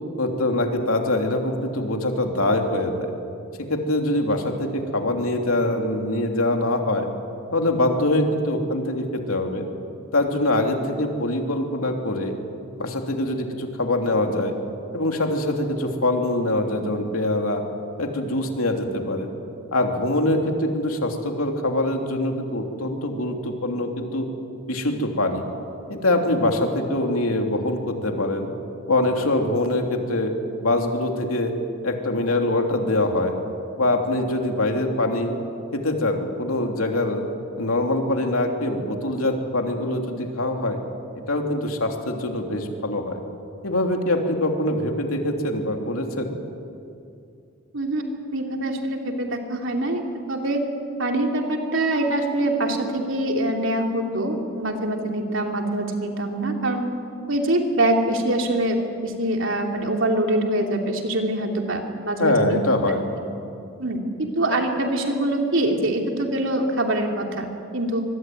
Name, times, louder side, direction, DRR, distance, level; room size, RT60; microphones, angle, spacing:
voice 1, 0.2-3.1 3.7-7.1 7.5-9.6 10.1-12.3 12.8-14.5 14.9-17.6 18.0-19.3 19.7-24.3 24.7-25.5 25.9-28.5 28.9-30.3 30.6-31.5 31.8-33.4 33.8-35.3 35.7-37.2 37.6-40.8 41.3-43.2 43.6-46.3 62.2-63.1, left 1 dB, 90° left, 3 dB, 3.1 m, -23 dB
voice 2, 48.3-50.0 50.3-50.6 51.0-56.9 57.3-62.6 63.8-68.0, right 1 dB, 65° right, 2 dB, 3.2 m, -24 dB
25.0 x 22.5 x 9.4 m, 2.6 s
head